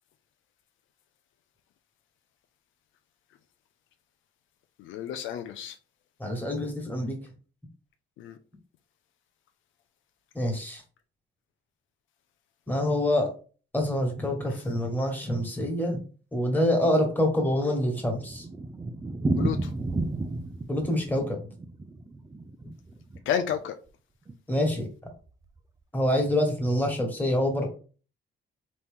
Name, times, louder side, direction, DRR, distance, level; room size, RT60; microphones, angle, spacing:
voice 1, 4.8-5.8 8.2-8.4 19.3-19.7 23.3-23.7, left 9 dB, 75° left, 0.5 m, -31 dB
voice 2, 6.2-7.2 10.3-10.8 12.7-13.3 13.7-16.0 16.3-18.5 20.7-21.4 24.5-24.9 25.9-27.7, left 1 dB, 10° left, 1.6 m, -26 dB
Thunder, 17.5-23.6 23.9-24.0 24.3-24.4 24.6-24.7 25.3-25.6, right 2 dB, 15° right, 0.4 m, -32 dB
4.0 x 3.0 x 3.6 m
cardioid pair, 90°, 20 cm